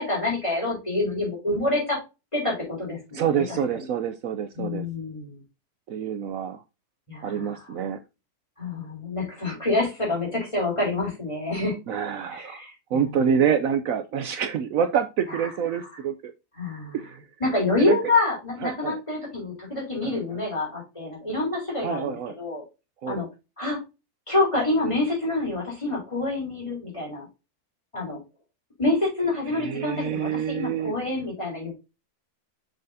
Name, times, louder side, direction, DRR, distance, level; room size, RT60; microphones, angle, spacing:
voice 1, 0.0-2.0 2.3-3.4 3.7-3.9 4.5-5.4 7.1-7.6 8.6-11.8 12.3-13.2 15.3-15.4 16.6-17.0 17.4-22.6 23.1-23.3 23.6-23.8 24.3-27.3 27.9-28.2 28.8-31.7, left 2 dB, 20° left, -3 dB, 3.9 m, -27 dB
voice 2, 3.1-4.9 5.9-6.6 7.2-8.0 11.9-12.6 12.9-16.3 16.9-17.2 17.8-18.0 18.6-19.0 20.0-20.4 21.8-22.3 23.0-23.2 29.5-30.9, right 8 dB, 70° right, 8 dB, 1.0 m, -27 dB
6.4 x 6.3 x 2.7 m, 0.27 s
omnidirectional pair, 1.6 m